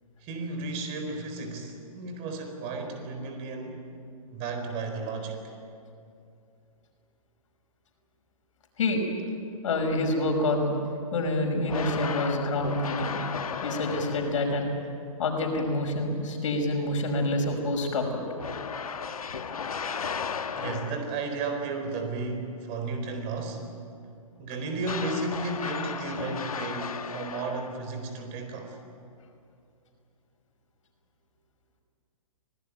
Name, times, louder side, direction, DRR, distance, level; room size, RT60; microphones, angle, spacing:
voice 1, 0.2-3.8 4.3-5.4 20.5-23.6 24.4-28.8, right 3 dB, 35° right, 5 dB, 4.4 m, -33 dB
voice 2, 9.6-10.8 11.1-13.1 13.6-14.7 15.2-18.2, left 2 dB, 60° left, 2 dB, 5.6 m, -27 dB
sound 1, 11.7-14.6 18.4-21.3 24.8-27.9, left 6 dB, 75° left, 1.3 m, -35 dB
25.5 x 18.0 x 9.2 m, 2.5 s
hypercardioid pair, 125°, 18 cm